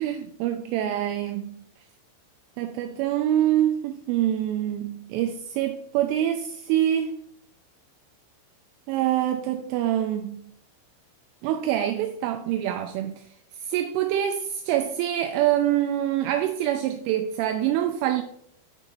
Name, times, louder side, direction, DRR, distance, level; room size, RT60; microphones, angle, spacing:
voice 1, 0.0-1.6 2.6-7.2 8.9-10.5 11.4-13.2 13.6-18.2, right 11 dB, 85° right, 2.9 m, -25 dB
12.5 x 5.0 x 3.0 m
omnidirectional pair, 5.9 m